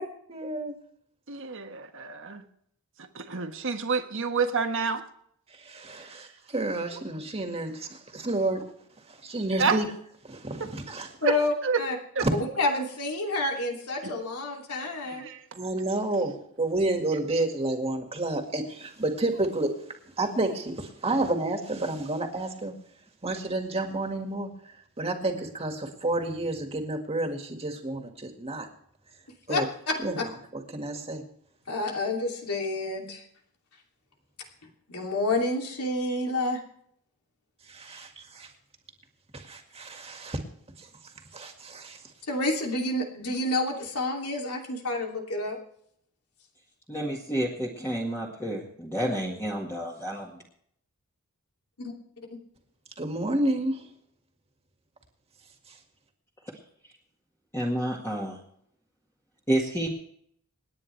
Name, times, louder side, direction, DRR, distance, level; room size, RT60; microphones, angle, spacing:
voice 1, 0.3-0.7 5.6-8.6 9.2-9.9 10.2-11.1 12.2-12.3 15.5-19.7 20.2-22.7 23.2-24.5 25.0-28.7 29.5-29.6 30.0-30.2 30.7-31.2 37.7-38.5 39.3-40.4 41.3-42.0 53.0-53.8, right 2 dB, 25° right, 4 dB, 2.0 m, -30 dB
voice 2, 1.3-2.4 3.1-5.0 9.6-9.8 10.6-10.7 11.2-11.3 11.6-11.8 12.2-12.3 14.0-14.1 15.2-15.4, right 5 dB, 60° right, 6 dB, 1.4 m, -28 dB
voice 3, 11.2-12.0 12.3-15.3 29.5-30.2 31.7-33.3 33.7-33.8 34.6-36.6 42.2-45.6 51.8-51.9 52.3-52.4, left 2 dB, 90° left, 0 dB, 2.9 m, -29 dB
voice 4, 46.9-50.3 57.5-58.4 59.5-59.9, right 1 dB, 10° left, -3 dB, 1.9 m, -30 dB
28.0 x 9.7 x 3.4 m, 0.69 s
head